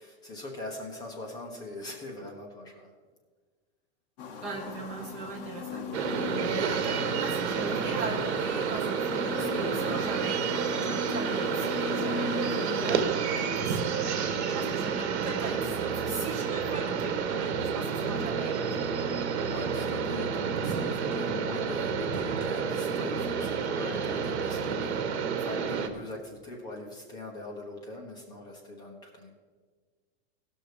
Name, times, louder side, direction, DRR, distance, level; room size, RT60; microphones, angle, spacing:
voice 1, 0.0-2.9 19.5-29.3, left 2 dB, 10° left, -1 dB, 1.0 m, -41 dB
sound 1, 4.2-13.0, left 4 dB, 40° left, 1.1 m, -37 dB
voice 2, 4.4-5.8 6.4-14.0 14.5-18.6, right 3 dB, 20° right, 2 dB, 1.0 m, -39 dB
sound 2, 5.9-25.9, right 6 dB, 70° right, 1.4 m, -30 dB
17.5 x 6.3 x 5.1 m, 1.5 s
supercardioid pair, 180°, 33 cm